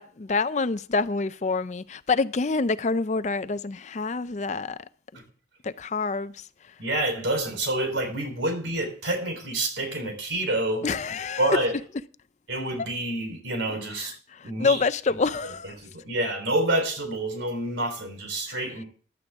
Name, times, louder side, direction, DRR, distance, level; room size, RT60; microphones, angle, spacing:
voice 1, 0.0-4.8 5.6-6.5 10.8-11.5 14.0-15.7 18.5-18.6, left 4 dB, 40° left, 0.5 m, -27 dB
voice 2, 6.8-10.9 11.4-11.7 12.5-14.1 14.4-14.8 15.8-18.9, right 1 dB, 85° right, 4.0 m, -28 dB
15.0 x 11.0 x 3.6 m
head